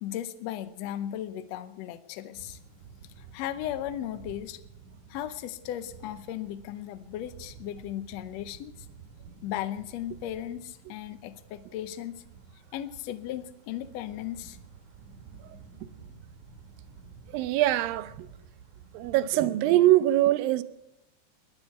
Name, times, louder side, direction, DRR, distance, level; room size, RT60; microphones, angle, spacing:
voice 1, 0.0-2.6 3.2-4.6 5.1-8.9 9.4-12.2 12.7-14.6, left 11 dB, 75° left, 1.6 m, -36 dB
sound 1, 2.3-19.3, right 6 dB, 65° right, 2.8 m, -51 dB
voice 2, 17.3-18.3 18.9-20.6, right 14 dB, 85° right, 2.4 m, -23 dB
21.5 x 8.2 x 7.0 m
omnidirectional pair, 4.0 m